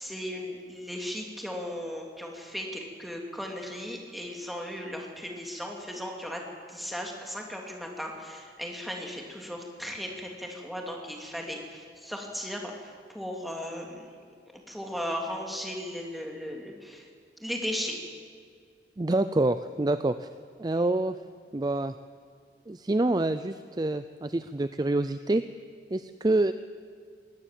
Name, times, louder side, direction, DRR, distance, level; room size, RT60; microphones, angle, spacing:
voice 1, 0.0-6.4 6.7-14.1 14.7-17.1 17.4-18.0, equal, ahead, 0 dB, 2.8 m, -36 dB
voice 2, 19.0-20.3 20.6-21.2 21.5-21.9 22.7-25.4 25.9-26.5, right 2 dB, 25° right, 11 dB, 0.4 m, -26 dB
21.5 x 17.0 x 7.6 m, 2.1 s
head